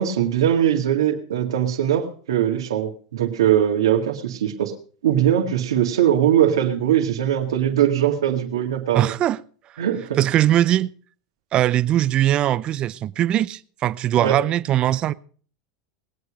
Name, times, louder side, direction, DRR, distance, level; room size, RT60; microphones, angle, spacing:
voice 1, 0.0-4.7 5.0-9.1 9.8-10.2 14.2-14.4, right 10 dB, 85° right, 1.9 m, -21 dB
voice 2, 8.9-9.4 10.2-10.9 11.5-15.1, right 12 dB, 40° right, 0.6 m, -20 dB
20.0 x 8.4 x 4.9 m
hypercardioid pair, 105°, 3 cm